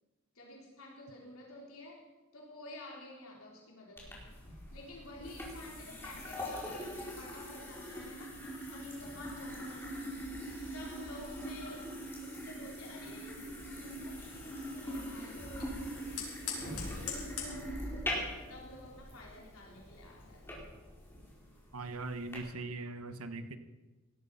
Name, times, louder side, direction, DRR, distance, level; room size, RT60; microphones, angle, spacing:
voice 1, 0.3-2.0 2.3-4.3 4.7-8.4 8.7-10.0 10.7-11.9 12.2-17.8 18.3-20.7, left 1 dB, 70° left, -2 dB, 4.1 m, -51 dB
sound 1, 4.0-22.4, equal, 10° left, 4.7 m, -42 dB
Fire, 13.2-20.5, left 6 dB, 90° left, 5.8 m, -47 dB
voice 2, 21.7-23.6, right 3 dB, 80° right, 10 dB, 1.2 m, -40 dB
18.0 x 12.5 x 5.7 m, 1.2 s
head